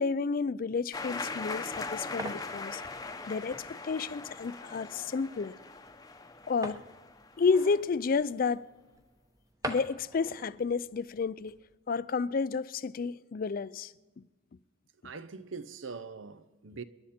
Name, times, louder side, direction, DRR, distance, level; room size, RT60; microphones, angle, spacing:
voice 1, 0.0-2.8 3.3-5.5 6.5-6.8 7.4-8.7 9.7-11.6 11.9-13.9, left 5 dB, 45° left, 0.4 m, -31 dB
sound 1, 0.9-7.6, left 3 dB, 20° left, 0.8 m, -40 dB
sound 2, 1.6-11.7, right 1 dB, 15° right, 0.9 m, -46 dB
voice 2, 15.0-16.8, right 4 dB, 70° right, 0.8 m, -42 dB
28.0 x 11.0 x 4.3 m
head